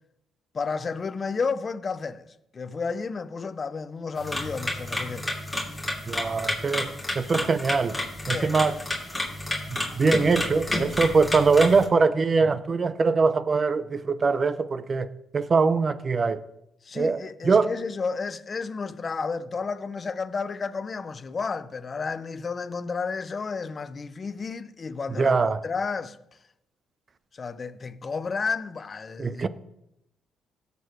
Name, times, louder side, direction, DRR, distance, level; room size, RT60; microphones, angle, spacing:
voice 1, 0.5-2.3 2.5-5.3 8.3-8.8 16.8-26.2 27.3-29.5, left 4 dB, 35° left, 0.6 m, -32 dB
sound 1, 4.2-11.9, left 1 dB, 5° left, 2.9 m, -31 dB
voice 2, 6.1-8.0 8.3-8.7 9.7-16.4 16.9-17.7 25.2-25.6 29.2-29.5, right 4 dB, 35° right, 0.6 m, -23 dB
16.5 x 6.8 x 3.1 m
cardioid pair, 90°, 0 cm